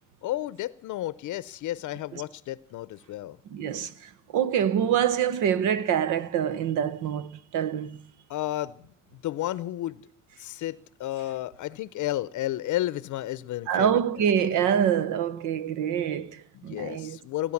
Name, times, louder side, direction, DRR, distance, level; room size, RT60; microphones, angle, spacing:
voice 1, 0.2-3.4 8.3-8.9 9.1-10.1 10.4-14.3 16.5-17.5, left 14 dB, 75° left, 0.6 m, -32 dB
voice 2, 3.5-8.0 13.7-17.2, right 9 dB, 90° right, 1.0 m, -26 dB
18.5 x 10.0 x 7.1 m
cardioid pair, 90°, 30 cm